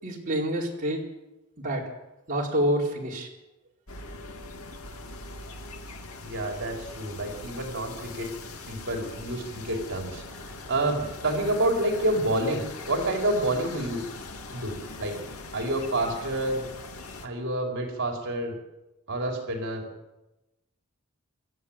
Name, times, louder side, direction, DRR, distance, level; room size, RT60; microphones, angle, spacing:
voice 1, 0.0-1.0 1.6-1.9 2.3-3.3, right 1 dB, 40° right, -2 dB, 4.4 m, -27 dB
sound 1, 3.9-17.3, left 3 dB, 90° left, 2.5 m, -41 dB
voice 2, 6.2-8.3 8.7-10.2 10.7-14.0 14.5-15.2 15.5-16.6 17.2-18.6 19.1-19.9, right 1 dB, 60° right, 2 dB, 4.5 m, -28 dB
28.0 x 13.5 x 8.9 m, 0.99 s
head